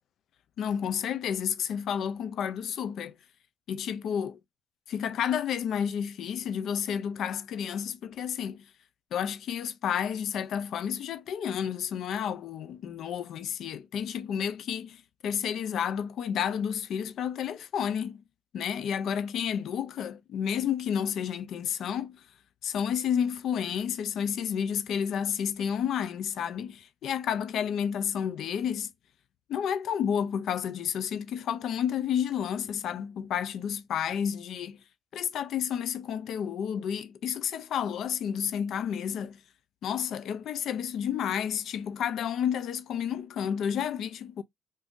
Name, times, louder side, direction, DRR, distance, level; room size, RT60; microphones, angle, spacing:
voice 1, 0.6-3.2 3.7-4.4 4.9-8.6 9.1-18.2 18.5-22.2 22.6-28.9 29.5-34.8 35.1-39.4 39.8-44.4, left 8 dB, 75° left, 0.4 m, -31 dB
2.6 x 2.5 x 3.4 m
cardioid pair, 90°, 0 cm